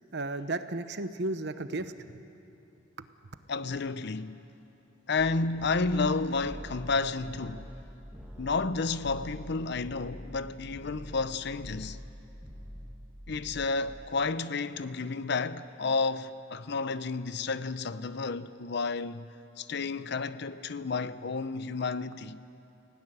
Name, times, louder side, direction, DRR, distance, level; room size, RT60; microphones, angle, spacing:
voice 1, 0.1-2.2 3.0-3.1, right 2 dB, 55° right, 0.9 m, -34 dB
voice 2, 3.5-4.4 5.1-7.7 8.4-12.0 13.3-19.3 19.6-22.4, left 4 dB, 55° left, 0.7 m, -31 dB
sound 1, 5.5-10.4 10.7-11.3 11.5-12.1 12.4-13.0 13.3-13.7, equal, 5° right, 2.2 m, -45 dB
23.5 x 17.0 x 10.0 m
head